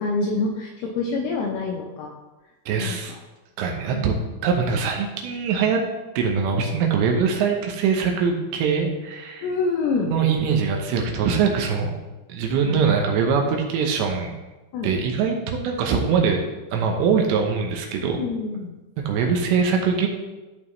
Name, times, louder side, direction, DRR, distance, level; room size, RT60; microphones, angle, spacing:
voice 1, 0.0-2.1 2.8-3.0 3.9-4.0 9.4-10.1 12.6-13.0 14.7-14.9 18.2-18.7, left 4 dB, 80° left, 0 dB, 2.4 m, -26 dB
voice 2, 2.7-3.1 3.6-4.1 4.4-5.8 6.2-9.5 10.1-11.9 12.3-14.3 14.8-16.4 16.7-18.2 19.0-20.1, right 6 dB, 75° right, 2 dB, 3.0 m, -22 dB
13.5 x 5.2 x 3.1 m, 1.1 s
omnidirectional pair, 5.4 m